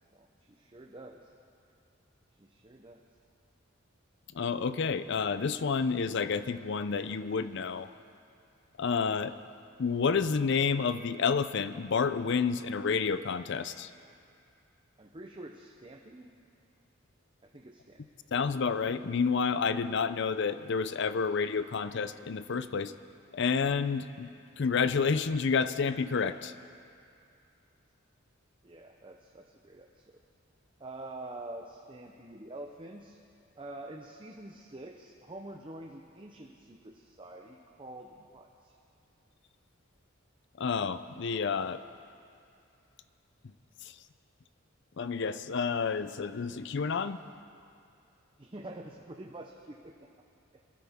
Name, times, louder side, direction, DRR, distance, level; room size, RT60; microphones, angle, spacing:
voice 1, 0.1-1.3 2.4-3.0 15.0-16.3 17.5-18.0 28.6-30.2 30.8-33.2 33.6-38.7 48.4-49.9 50.5-50.6, right 1 dB, 25° right, 1 dB, 0.7 m, -46 dB
voice 2, 4.3-7.9 8.8-9.3 9.8-13.9 18.3-22.9 23.3-24.3 24.6-26.5 40.6-41.8 43.8-43.9 45.0-47.2, left 5 dB, 60° left, 13 dB, 0.5 m, -29 dB
24.0 x 12.5 x 3.6 m, 2.5 s
head